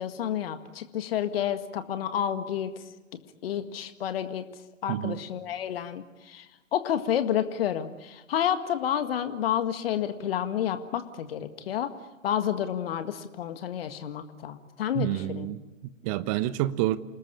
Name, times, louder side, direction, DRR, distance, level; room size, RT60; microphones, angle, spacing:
voice 1, 0.0-2.7 3.4-4.4 4.8-6.5 6.7-11.9 12.2-15.5, left 10 dB, 50° left, 1.9 m, -30 dB
voice 2, 4.9-5.2 14.9-17.0, right 14 dB, 25° right, 1.0 m, -29 dB
29.0 x 20.0 x 10.0 m
figure-of-eight pair, 120°, 38 cm